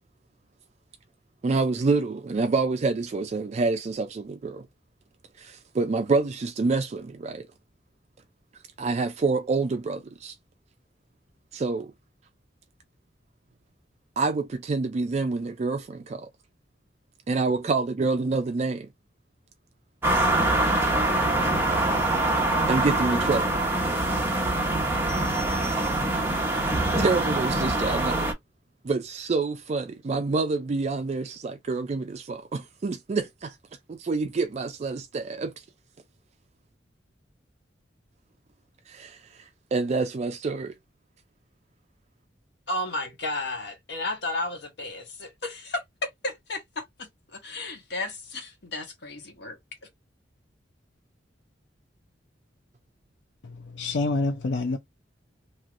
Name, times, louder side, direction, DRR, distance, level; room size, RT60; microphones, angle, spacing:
voice 1, 1.4-4.7 5.4-7.5 8.8-10.4 11.5-11.9 14.2-16.3 17.3-18.9 22.7-23.6 27.0-28.3 28.8-33.6 33.9-35.5 38.9-40.7, right 3 dB, 40° right, 0.4 m, -27 dB
sound 1, 20.0-28.3, right 2 dB, 15° right, 0.9 m, -24 dB
voice 2, 42.7-49.6, left 2 dB, 70° left, 1.2 m, -33 dB
voice 3, 53.4-54.8, left 3 dB, 85° left, 0.5 m, -27 dB
3.1 x 2.9 x 2.5 m
head